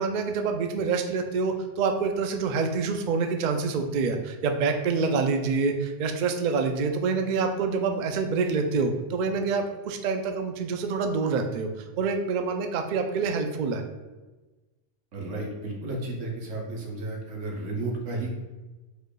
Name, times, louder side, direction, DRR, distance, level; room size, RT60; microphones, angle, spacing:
voice 1, 0.0-11.7 12.0-13.8, right 4 dB, 60° right, 5 dB, 0.5 m, -26 dB
voice 2, 15.1-18.4, right 2 dB, 85° right, -1 dB, 1.3 m, -33 dB
4.8 x 4.5 x 2.3 m, 1.2 s
omnidirectional pair, 1.2 m